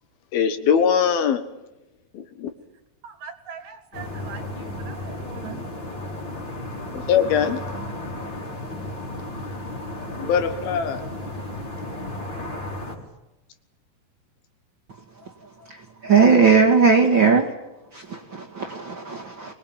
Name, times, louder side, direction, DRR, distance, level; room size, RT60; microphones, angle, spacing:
voice 1, 0.3-1.4 2.1-2.5 6.9-7.7 10.2-11.0, left 7 dB, 70° left, 9 dB, 3.0 m, -21 dB
voice 2, 3.0-5.7 6.9-7.9 8.5-8.7 10.2-10.4 11.0-11.3, right 7 dB, 60° right, 9 dB, 3.2 m, -42 dB
sound 1, 3.9-13.0, left 1 dB, 30° left, 4.5 m, -34 dB
voice 3, 16.0-17.5 17.9-19.5, right 5 dB, 40° right, 0 dB, 2.1 m, -18 dB
23.5 x 21.0 x 8.9 m, 0.97 s
omnidirectional pair, 4.8 m